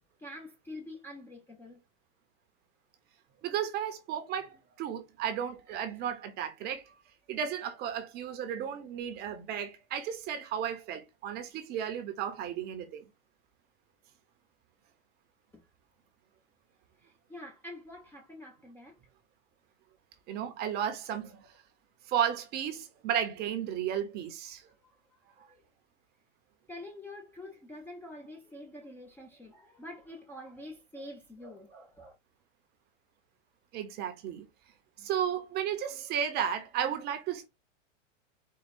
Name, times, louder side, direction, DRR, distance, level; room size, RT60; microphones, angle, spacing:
voice 1, 0.2-1.8 15.5-15.6 17.0-19.0 24.8-24.9 25.4-25.6 26.7-32.1, left 1 dB, 5° left, 0.6 m, -46 dB
voice 2, 3.4-6.8 7.3-13.1 20.3-21.5 22.1-24.6 33.7-34.5 35.0-37.5, right 9 dB, 25° right, 0.8 m, -34 dB
4.6 x 2.3 x 4.2 m
hypercardioid pair, 135°, 38 cm